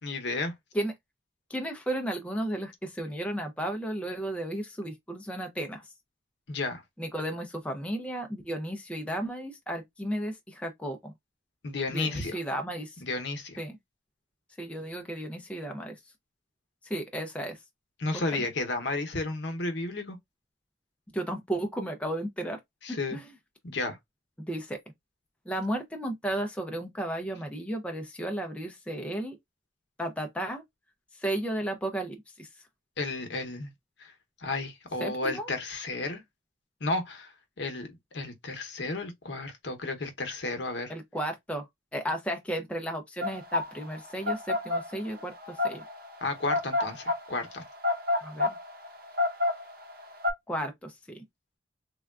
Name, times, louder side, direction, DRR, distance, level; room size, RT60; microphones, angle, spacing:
voice 1, 0.0-0.5 6.5-6.8 11.6-12.4 13.0-13.6 18.0-20.2 22.8-23.2 23.6-24.0 33.0-33.7 34.0-34.1 34.4-36.2 36.8-40.9 46.2-47.6, left 2 dB, 65° left, 0.8 m, -32 dB
voice 2, 1.5-5.9 7.0-11.1 11.9-13.0 13.6-13.8 14.6-16.0 16.8-17.6 21.1-22.6 22.9-23.3 24.4-24.8 25.5-29.4 30.0-30.6 31.2-32.5 35.0-35.5 40.9-45.8 48.2-48.6 50.5-51.2, right 1 dB, 5° left, 0.4 m, -34 dB
sound 1, 43.2-50.3, left 2 dB, 50° right, 0.8 m, -29 dB
3.4 x 2.2 x 2.3 m
head